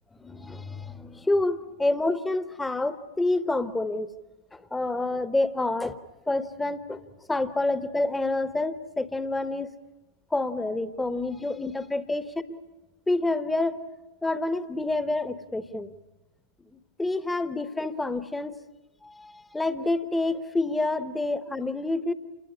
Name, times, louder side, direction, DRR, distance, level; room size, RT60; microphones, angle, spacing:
voice 1, 0.2-4.1 4.5-6.0 6.3-7.0 7.3-9.7 10.3-12.6 13.1-13.8 14.2-15.9 17.0-18.6 19.0-22.1, left 2 dB, 10° left, 14 dB, 1.1 m, -28 dB
28.0 x 21.0 x 9.8 m, 1.1 s
figure-of-eight pair, 90°, 0 cm